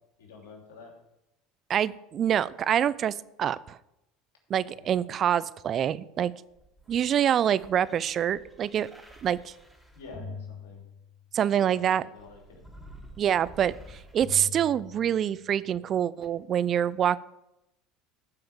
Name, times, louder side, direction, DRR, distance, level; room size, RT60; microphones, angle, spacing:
voice 1, 0.2-0.9 4.6-4.9 9.9-10.8 11.5-12.6, left 4 dB, 80° left, 0 dB, 3.1 m, -48 dB
voice 2, 1.7-3.8 4.5-6.3 6.9-8.9 9.2-9.5 11.3-12.0 13.2-17.2, right 9 dB, 45° right, 17 dB, 0.6 m, -26 dB
sound 1, 6.5-11.4 12.1-15.5 16.2-16.3, left 3 dB, ahead, 3.4 m, -46 dB
14.5 x 5.8 x 7.2 m, 0.87 s
hypercardioid pair, 75°, 0 cm